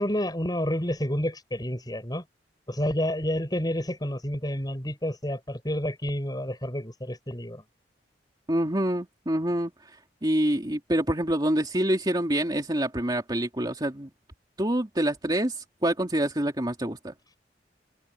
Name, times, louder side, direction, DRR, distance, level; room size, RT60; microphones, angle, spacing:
voice 1, 0.0-2.2 2.7-7.6, equal, 20° left, 7.9 m, -29 dB
voice 2, 8.5-9.9 10.2-14.1 14.6-17.1, right 1 dB, 25° right, 2.9 m, -26 dB
head